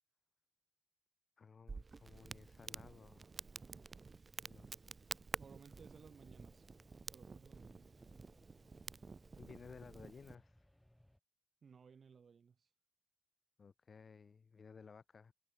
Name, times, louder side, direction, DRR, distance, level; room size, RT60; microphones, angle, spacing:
voice 1, 1.4-3.3 4.4-5.1 9.4-10.7 13.6-15.3, left 5 dB, 40° left, 0.7 m, -57 dB
Crackle, 1.7-10.3, right 4 dB, 30° right, 0.4 m, -50 dB
voice 2, 5.4-6.6 7.1-7.9 11.6-12.7, right 6 dB, 50° right, 2.4 m, -60 dB
sound 1, 5.7-11.2, left 1 dB, 5° left, 4.2 m, -68 dB
cardioid pair, 115°, 0 cm